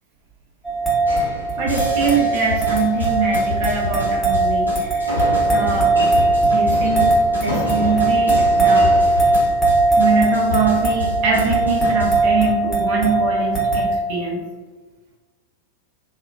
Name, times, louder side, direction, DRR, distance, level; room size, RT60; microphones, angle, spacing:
sound 1, 0.6-14.0, right 2 dB, 5° left, 0.8 m, -19 dB
sound 2, 1.1-2.1 2.8-3.3 5.1-9.9, equal, 85° right, 0.7 m, -30 dB
voice 1, 1.6-5.1 5.5-5.9 6.5-8.9 9.9-14.4, right 5 dB, 45° right, -2 dB, 0.5 m, -23 dB
sound 3, 1.7-12.3, left 3 dB, 85° left, 0.6 m, -29 dB
2.7 x 2.1 x 2.5 m, 1.4 s
figure-of-eight pair, 90°, 0 cm